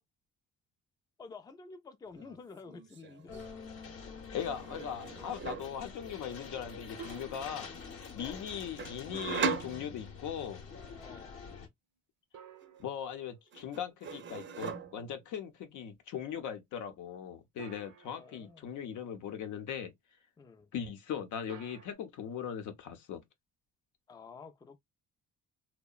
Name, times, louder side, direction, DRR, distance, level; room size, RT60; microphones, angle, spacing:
voice 1, 1.2-3.4 8.1-8.4 11.0-11.4 18.0-18.7 20.4-20.7 24.1-24.8, left 4 dB, 15° left, 0.3 m, -50 dB
sound 1, 2.1-2.4 2.6-3.4 4.4-5.8 8.8-10.4 12.6-13.2 13.5-15.2, right 5 dB, 40° right, 0.5 m, -39 dB
sound 2, 3.3-11.7, left 5 dB, 50° left, 0.8 m, -47 dB
voice 2, 4.3-7.7 8.1-10.6 12.8-19.9 20.7-23.2, left 8 dB, 80° left, 0.7 m, -39 dB
sound 3, 7.0-8.1 12.3-13.9 17.6-18.8 21.5-21.9, right 6 dB, 75° right, 0.7 m, -52 dB
2.8 x 2.1 x 2.3 m
cardioid pair, 90°, 30 cm